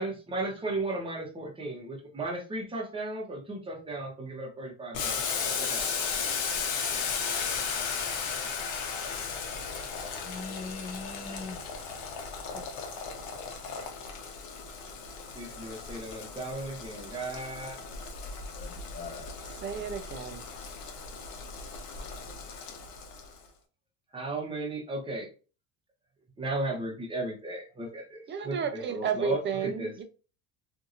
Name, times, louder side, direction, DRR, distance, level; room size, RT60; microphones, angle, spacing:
voice 1, 0.0-6.0 15.3-17.8 24.1-25.3 26.4-29.9, right 2 dB, 15° right, 0.9 m, -35 dB
Boiling, 4.9-23.4, left 5 dB, 70° left, 0.9 m, -36 dB
voice 2, 10.2-11.6 12.4-12.7 18.5-19.4, left 3 dB, 20° left, 0.6 m, -41 dB
voice 3, 19.6-20.4 28.3-30.0, right 7 dB, 30° right, 0.5 m, -32 dB
2.8 x 2.6 x 2.5 m
cardioid pair, 130°, 38 cm